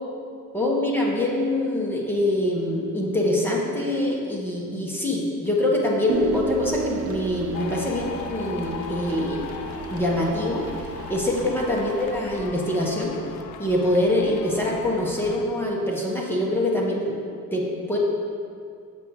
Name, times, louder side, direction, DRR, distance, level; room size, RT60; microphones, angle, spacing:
voice 1, 0.5-9.5 9.9-10.6 11.1-13.2 13.6-17.2 17.5-18.0, left 1 dB, 5° left, -3 dB, 1.1 m, -24 dB
sound 1, 6.1-12.4, right 5 dB, 50° right, 0.6 m, -33 dB
sound 2, 7.5-15.4, left 7 dB, 75° left, 0.5 m, -39 dB
7.3 x 7.0 x 4.7 m, 2.3 s
cardioid pair, 155°, 30 cm